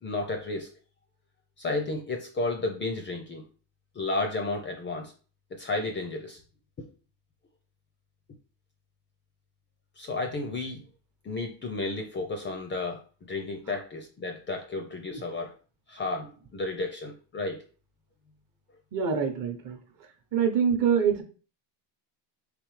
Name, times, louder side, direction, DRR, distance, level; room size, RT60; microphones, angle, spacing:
voice 1, 0.0-0.7 1.6-3.4 3.9-5.1 5.5-6.4 10.0-10.9 11.2-13.0 13.3-15.5 15.9-17.7, left 2 dB, 25° left, 4 dB, 0.4 m, -32 dB
voice 2, 18.9-19.8 20.3-21.2, right 7 dB, 40° right, 5 dB, 0.8 m, -25 dB
3.5 x 3.4 x 3.1 m, 0.37 s
supercardioid pair, 115°, 50 cm